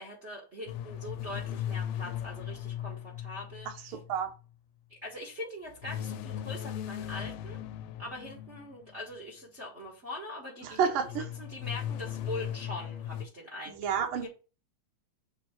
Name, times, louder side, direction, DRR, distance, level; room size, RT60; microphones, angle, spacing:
voice 1, 0.0-4.0 5.0-7.6 8.0-14.3, left 1 dB, 60° right, 0.7 m, -42 dB
sound 1, 0.7-4.2 5.8-8.9 11.0-13.3, left 10 dB, 85° left, 2.2 m, -38 dB
voice 2, 3.9-4.3 10.6-11.2 13.7-14.3, right 7 dB, 75° right, 1.2 m, -30 dB
6.8 x 3.0 x 5.8 m
omnidirectional pair, 4.0 m